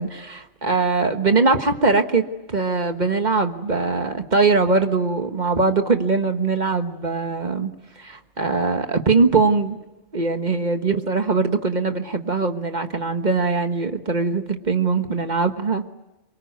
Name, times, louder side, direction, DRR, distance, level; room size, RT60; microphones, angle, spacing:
voice 1, 0.0-9.8 10.1-15.9, right 4 dB, 40° right, 7 dB, 1.5 m, -21 dB
24.5 x 23.5 x 9.4 m, 1.0 s
omnidirectional pair, 1.2 m